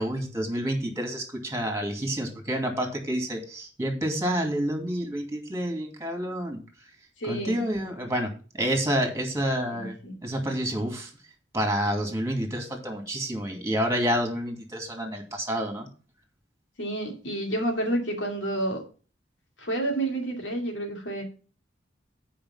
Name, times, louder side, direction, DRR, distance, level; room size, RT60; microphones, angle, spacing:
voice 1, 0.0-6.6 7.2-8.3 8.5-10.0 10.2-11.1 11.5-15.9, equal, 15° right, 3 dB, 2.3 m, -28 dB
voice 2, 7.2-7.6 9.7-10.2 16.8-18.8 19.6-21.2, right 1 dB, 85° left, 2 dB, 2.5 m, -29 dB
8.9 x 5.1 x 5.6 m, 0.37 s
head